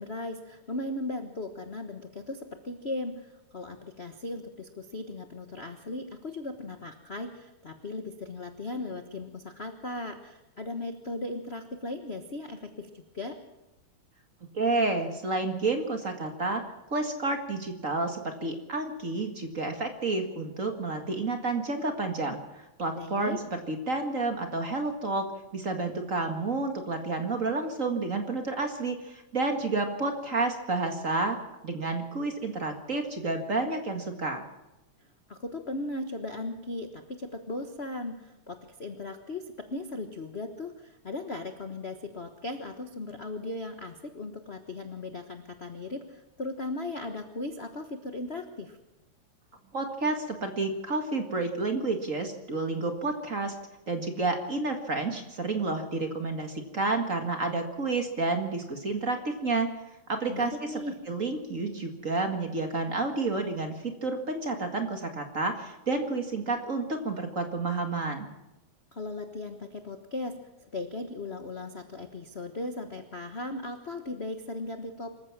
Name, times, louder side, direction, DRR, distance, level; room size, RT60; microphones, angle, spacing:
voice 1, 0.0-13.4 23.0-23.4 35.0-48.8 60.3-61.0 68.9-70.3 70.6-75.2, left 2 dB, 55° left, 6 dB, 0.6 m, -37 dB
voice 2, 14.5-16.6 16.9-22.4 22.8-31.4 31.6-34.5 49.7-53.6 53.9-59.7 60.1-60.8 61.1-68.3, right 3 dB, 30° right, 5 dB, 1.9 m, -30 dB
25.5 x 14.5 x 7.3 m, 0.99 s
omnidirectional pair, 3.3 m